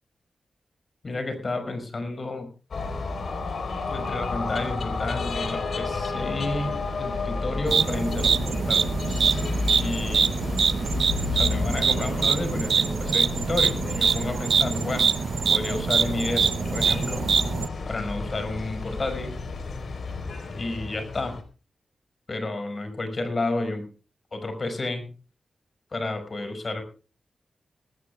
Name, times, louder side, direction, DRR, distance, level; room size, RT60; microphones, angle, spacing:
voice 1, 1.0-2.5 3.9-9.4 9.7-10.3 11.3-15.1 15.5-17.2 17.9-19.3 20.6-21.4 22.3-23.8 24.3-25.0 25.9-26.8, left 2 dB, 45° left, 7 dB, 5.6 m, -31 dB
sound 1, 2.7-21.4, left 3 dB, 70° left, 3.9 m, -31 dB
sound 2, 7.7-17.7, right 6 dB, 75° right, 0.7 m, -24 dB
21.0 x 18.5 x 2.3 m, 0.35 s
cardioid pair, 75°, 0 cm